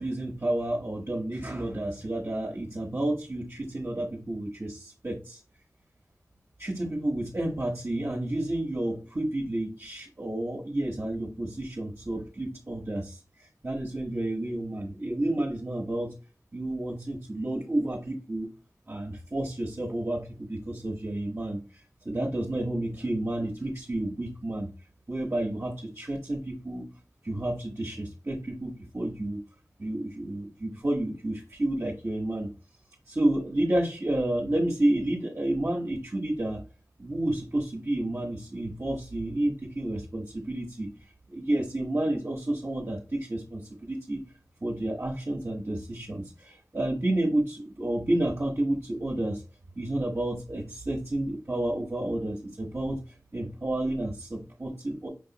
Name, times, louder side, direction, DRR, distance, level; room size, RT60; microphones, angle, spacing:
voice 1, 0.0-5.4 6.6-13.2 13.6-16.1 16.5-18.5 18.9-21.6 22.0-24.7 25.1-26.8 27.2-29.4 29.8-32.5 33.1-36.6 37.0-40.9 41.3-44.2 44.6-49.4 49.8-53.0 53.3-55.1, right 1 dB, 45° right, -3 dB, 1.0 m, -30 dB
5.1 x 3.0 x 2.8 m, 0.32 s
wide cardioid pair, 60°, 6 cm